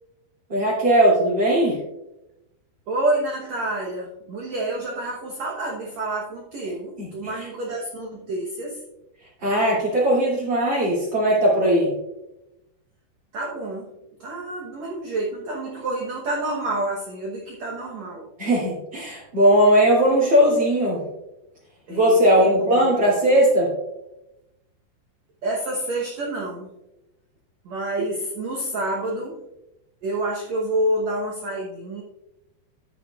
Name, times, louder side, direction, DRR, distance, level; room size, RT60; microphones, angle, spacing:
voice 1, 0.5-1.8 7.0-7.1 7.4-7.5 9.4-11.9 18.4-21.0 21.9-23.7, equal, 35° right, -9 dB, 2.6 m, -19 dB
voice 2, 2.9-8.8 13.3-13.9 14.2-18.3 21.9-22.9 25.4-26.7 27.6-29.4 30.0-32.0, right 1 dB, 80° right, -1 dB, 1.5 m, -28 dB
12.0 x 9.4 x 2.4 m, 0.93 s
omnidirectional pair, 4.8 m